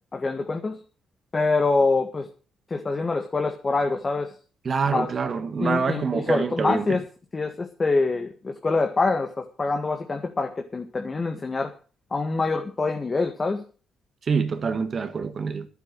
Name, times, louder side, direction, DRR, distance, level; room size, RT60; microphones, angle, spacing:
voice 1, 0.1-0.8 1.3-2.3 2.7-4.4 4.9-5.1 5.6-7.0 7.3-11.7 12.1-13.6, left 3 dB, 30° left, 1.8 m, -25 dB
voice 2, 4.7-6.9 14.2-15.7, right 5 dB, 45° right, 1.6 m, -26 dB
11.5 x 8.3 x 7.8 m
cardioid pair, 90°, 0 cm